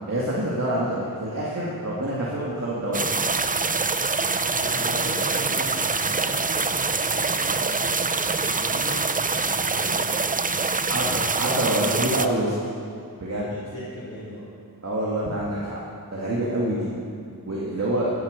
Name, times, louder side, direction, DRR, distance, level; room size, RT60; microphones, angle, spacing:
voice 1, 0.1-3.2 10.9-12.5 13.2-13.5 14.8-15.8 16.1-16.9 17.4-18.1, right 1 dB, 45° right, -6 dB, 2.2 m, -26 dB
sound 1, 2.9-12.3, right 4 dB, 25° right, 0.5 m, -25 dB
voice 2, 4.5-8.0 8.4-10.6 13.5-14.4, equal, 40° left, -10 dB, 3.6 m, -38 dB
14.5 x 8.9 x 6.7 m, 2.4 s
wide cardioid pair, 90°, 36 cm